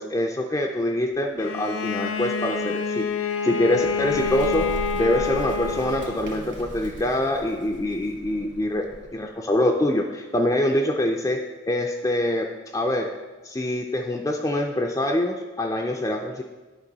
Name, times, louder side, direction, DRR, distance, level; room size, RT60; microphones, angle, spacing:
voice 1, 0.0-13.1 13.4-16.4, left 1 dB, 15° left, 2 dB, 0.4 m, -25 dB
Bowed string instrument, 1.4-6.5, left 4 dB, 90° left, 0.5 m, -28 dB
Bird, 3.7-9.3, right 1 dB, 60° right, 1.7 m, -38 dB
9.9 x 5.2 x 3.9 m, 1.2 s
head